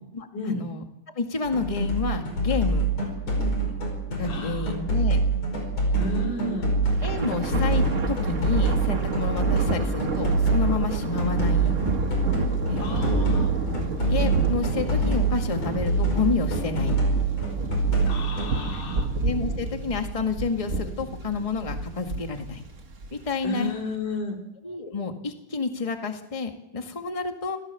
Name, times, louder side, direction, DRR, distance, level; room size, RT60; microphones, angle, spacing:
voice 1, 0.1-0.8 1.1-2.9 4.2-5.2 5.9-6.1 7.0-11.8 12.7-13.0 14.1-17.1 18.7-18.8 19.2-22.6 23.1-23.7 24.6-27.6, left 4 dB, 15° left, 5 dB, 1.4 m, -30 dB
sound 1, 1.4-18.6, right 2 dB, 55° left, 6.2 m, -25 dB
voice 2, 4.3-4.7 6.0-6.8 12.8-13.5 18.1-19.1 23.4-24.4, left 2 dB, 90° left, 2 dB, 4.9 m, -32 dB
Thunder, 6.8-23.4, right 3 dB, 40° right, 1.2 m, -30 dB
26.0 x 17.5 x 7.1 m, 0.90 s
omnidirectional pair, 3.5 m